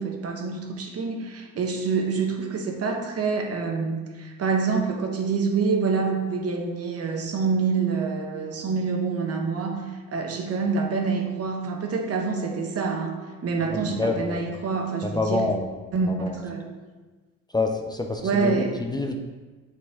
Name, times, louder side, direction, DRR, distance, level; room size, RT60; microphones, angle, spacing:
voice 1, 0.0-13.2 13.4-15.5 15.9-16.7 18.2-18.8, right 4 dB, 55° right, 3 dB, 1.0 m, -26 dB
voice 2, 13.7-14.4 15.0-15.7 16.1-16.4 17.5-19.2, left 3 dB, 15° left, 2 dB, 0.6 m, -27 dB
7.4 x 4.3 x 3.6 m, 1.3 s
cardioid pair, 90°, 30 cm